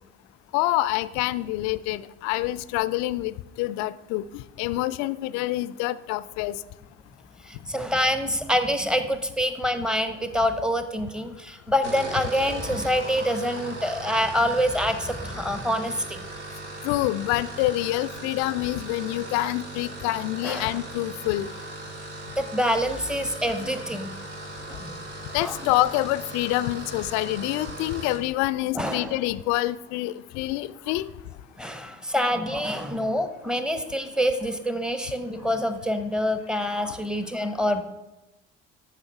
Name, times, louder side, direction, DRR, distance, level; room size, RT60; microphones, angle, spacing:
voice 1, 0.5-6.6 16.8-21.5 25.3-31.1, left 16 dB, 55° left, 17 dB, 0.4 m, -27 dB
voice 2, 7.5-16.2 20.4-20.8 22.4-24.1 24.7-24.9 25.4-25.6 28.7-29.2 31.6-37.8, equal, ahead, 9 dB, 0.7 m, -26 dB
sound 1, 11.7-28.3, right 2 dB, 85° right, 1.0 m, -38 dB
13.0 x 5.8 x 3.4 m, 1.0 s
figure-of-eight pair, 50°, 34 cm